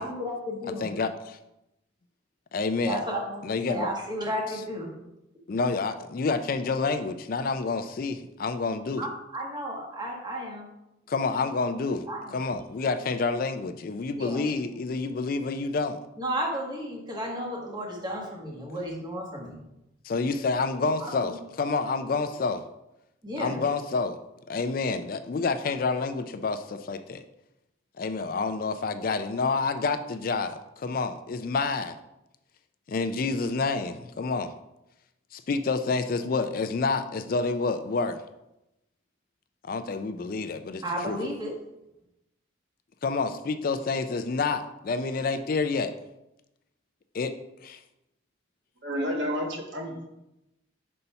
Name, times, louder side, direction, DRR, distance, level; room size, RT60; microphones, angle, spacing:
voice 1, 0.0-0.9 2.8-4.9 9.0-10.7 12.1-12.5 14.2-14.4 16.2-19.6 21.0-21.4 23.2-23.6 40.8-41.5, equal, 20° right, -1 dB, 1.3 m, -33 dB
voice 2, 0.8-1.4 2.5-3.0 3.4-3.9 5.5-9.0 11.1-12.1 12.3-16.0 20.0-22.6 23.4-24.2 24.5-27.2 28.0-32.0 32.9-34.5 35.3-38.2 39.6-41.2 43.0-45.9 47.1-47.3 47.6-47.8, left 4 dB, 45° left, 9 dB, 0.4 m, -28 dB
voice 3, 48.8-50.1, equal, 70° right, 1 dB, 1.3 m, -30 dB
5.5 x 4.1 x 5.6 m, 0.90 s
head